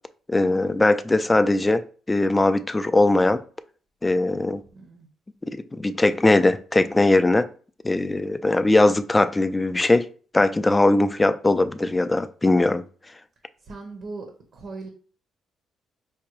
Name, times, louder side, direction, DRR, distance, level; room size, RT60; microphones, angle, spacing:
voice 1, 0.3-3.4 4.0-4.6 5.4-7.5 7.8-10.1 10.3-12.8, left 2 dB, 15° left, 0.3 m, -20 dB
voice 2, 4.7-5.1 13.6-14.3 14.5-14.9, right 3 dB, 65° right, 0.8 m, -38 dB
4.8 x 2.2 x 3.0 m
cardioid pair, 90°, 0 cm